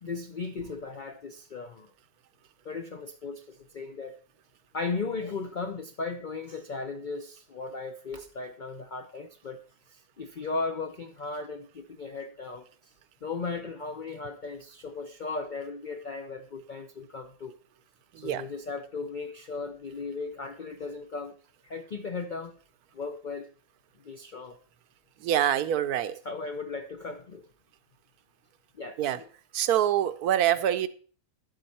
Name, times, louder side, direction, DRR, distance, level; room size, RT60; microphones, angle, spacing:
voice 1, 0.0-1.9 2.6-4.2 4.7-9.6 9.9-12.9 13.2-17.5 18.1-21.3 21.6-22.6 22.9-23.5 24.0-24.6 26.2-27.5 28.7-29.3, left 4 dB, 55° left, 0.5 m, -36 dB
voice 2, 25.2-26.2 29.0-29.2 29.5-30.9, right 11 dB, 75° right, 1.1 m, -25 dB
11.0 x 7.8 x 4.2 m
omnidirectional pair, 1.7 m